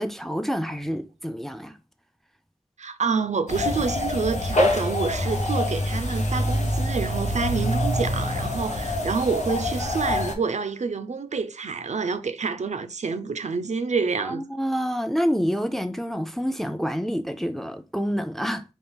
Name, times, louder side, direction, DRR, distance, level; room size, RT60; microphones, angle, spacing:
voice 1, 0.0-1.8 14.2-18.6, equal, ahead, 0.4 m, -27 dB
voice 2, 2.8-14.4, right 5 dB, 80° right, 0.4 m, -28 dB
sound 1, 3.5-10.3, left 1 dB, 85° left, 0.8 m, -25 dB
4.1 x 2.4 x 3.8 m
wide cardioid pair, 55°, 12 cm